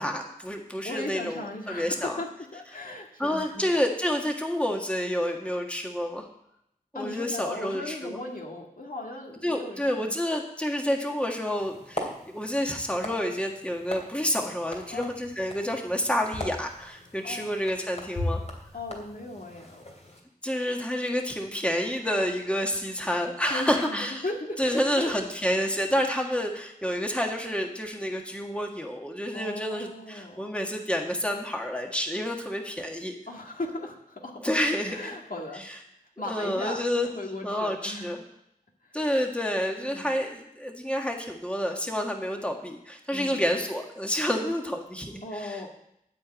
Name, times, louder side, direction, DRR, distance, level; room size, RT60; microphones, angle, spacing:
voice 1, 0.0-2.2 3.2-6.3 6.9-8.2 9.4-18.4 20.4-24.2 24.6-33.2 34.4-35.1 35.5-35.6 36.3-37.1 37.4-38.2 38.9-45.6, equal, 10° left, 2 dB, 1.6 m, -29 dB
voice 2, 0.8-3.6 6.9-10.2 14.9-15.1 17.2-17.5 18.7-19.8 23.5-25.1 29.3-30.6 33.3-34.5 34.9-35.6 35.9-36.8 37.2-38.1 38.8-39.0 39.8-40.1 43.1-43.4 45.2-45.7, left 2 dB, 65° left, 0 dB, 1.9 m, -37 dB
sound 1, 11.6-20.2, left 1 dB, 45° left, 2.9 m, -39 dB
12.5 x 4.7 x 8.7 m, 0.77 s
wide cardioid pair, 45°, 15 cm